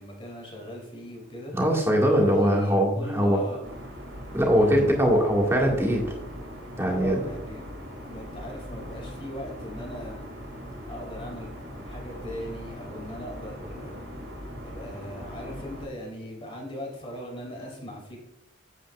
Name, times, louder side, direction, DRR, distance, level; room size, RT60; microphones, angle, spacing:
voice 1, 0.0-1.6 2.2-3.7 4.6-4.9 6.9-7.7 8.0-10.2 10.9-11.5 11.9-14.0 14.6-18.2, equal, 25° left, 0 dB, 2.7 m, -39 dB
voice 2, 1.5-3.4 4.3-6.0 6.8-7.2, equal, 15° right, -1 dB, 1.9 m, -21 dB
sound 1, 3.6-15.9, equal, 90° right, 2.5 m, -40 dB
9.4 x 8.5 x 2.5 m, 0.88 s
head